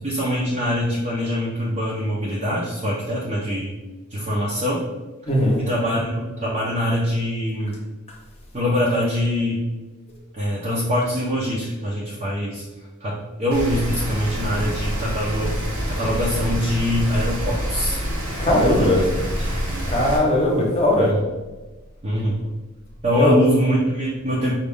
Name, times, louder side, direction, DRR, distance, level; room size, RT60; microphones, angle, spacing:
voice 1, 0.0-3.7 4.1-4.8 5.6-7.8 8.5-9.6 10.3-12.6 13.0-18.0 18.5-19.8 21.0-21.2 22.0-22.4 23.0-24.5, equal, 30° right, -6 dB, 0.6 m, -24 dB
voice 2, 5.3-5.6 18.4-19.0 19.9-21.1 23.1-23.3, left 1 dB, 25° left, -2 dB, 0.9 m, -18 dB
Rain, 13.5-20.2, equal, 75° right, 1.2 m, -27 dB
5.1 x 2.4 x 3.5 m, 1.2 s
head